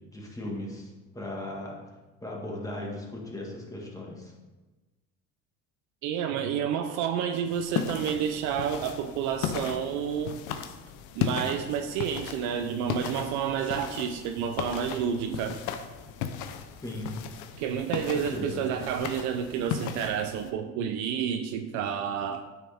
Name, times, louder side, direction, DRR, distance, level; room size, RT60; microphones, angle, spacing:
voice 1, 0.1-1.8 2.2-4.3 16.8-17.1 18.0-18.7, left 1 dB, 10° left, -2 dB, 1.8 m, -37 dB
voice 2, 6.0-10.4 11.2-15.6 17.6-22.5, right 8 dB, 75° right, 6 dB, 0.6 m, -30 dB
sound 1, 7.5-20.5, left 8 dB, 80° left, 0.8 m, -36 dB
9.1 x 6.4 x 3.5 m, 1.2 s
cardioid pair, 135°, 29 cm